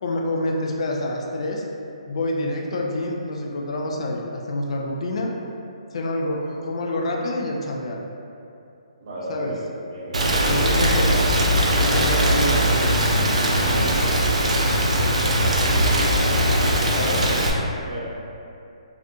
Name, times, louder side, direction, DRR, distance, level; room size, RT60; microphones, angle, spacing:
voice 1, 0.0-1.6 2.1-5.3 5.9-8.1 9.3-9.6 10.4-11.2 11.8-14.0 16.9-17.3, left 1 dB, 60° left, 0 dB, 0.3 m, -27 dB
voice 2, 9.0-9.6 9.9-10.5 17.8-18.0, right 1 dB, 55° right, -7 dB, 0.7 m, -34 dB
Rain, 10.1-17.5, equal, 85° right, 0.4 m, -20 dB
2.3 x 2.2 x 2.7 m, 2.7 s
hypercardioid pair, 140°, 3 cm